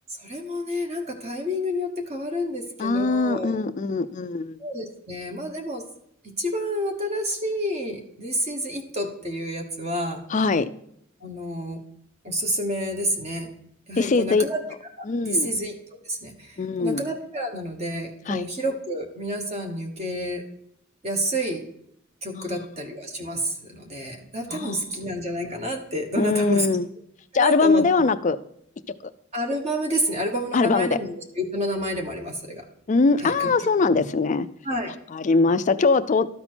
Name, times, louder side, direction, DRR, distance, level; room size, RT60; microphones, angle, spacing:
voice 1, 0.2-3.6 4.6-5.8 6.4-10.2 11.2-11.8 12.2-13.5 13.9-14.6 15.0-15.7 16.0-20.4 21.0-21.6 22.2-26.7 27.3-28.1 29.3-32.6 33.2-33.5 33.9-34.1 34.6-34.9, equal, 30° right, 3 dB, 1.2 m, -29 dB
voice 2, 2.8-4.6 10.3-10.7 14.0-14.4 15.1-15.5 16.6-17.0 18.3-18.4 22.3-22.7 24.5-24.8 26.2-26.9 27.3-28.4 30.5-30.9 32.9-34.5 35.1-36.3, left 4 dB, 35° left, 11 dB, 0.4 m, -22 dB
12.5 x 4.3 x 4.3 m, 0.73 s
head